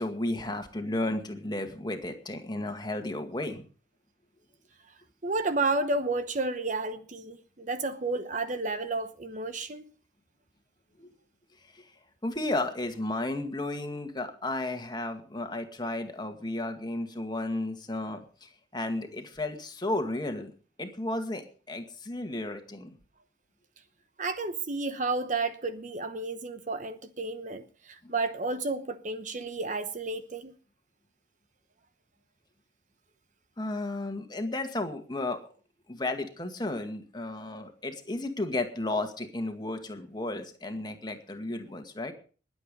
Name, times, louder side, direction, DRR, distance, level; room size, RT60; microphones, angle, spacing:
voice 1, 0.0-3.6 11.0-11.1 11.7-11.8 12.2-20.5 20.8-22.9 28.0-28.1 33.6-35.4 35.9-42.1, left 2 dB, 25° left, 2.0 m, -33 dB
voice 2, 5.2-9.8 24.2-30.5, right 3 dB, 40° right, 0.9 m, -31 dB
21.0 x 8.1 x 5.4 m
head